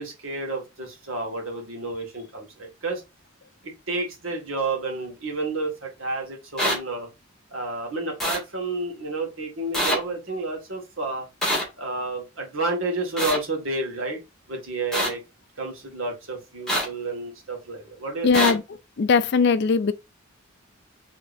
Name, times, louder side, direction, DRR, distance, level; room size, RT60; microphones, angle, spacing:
voice 1, 0.0-3.0 3.6-7.1 7.5-11.2 11.8-14.2 14.5-15.2 15.6-18.6, right 2 dB, 80° right, 1.9 m, -30 dB
sound 1, 6.6-6.7 8.2-8.4 9.7-10.0 11.4-11.6 13.2-13.4 14.9-15.1 16.7-16.8 18.3-18.5, equal, 5° left, 2.4 m, -23 dB
voice 2, 18.2-18.6 19.0-19.9, left 5 dB, 55° left, 0.4 m, -19 dB
5.0 x 3.5 x 2.6 m
head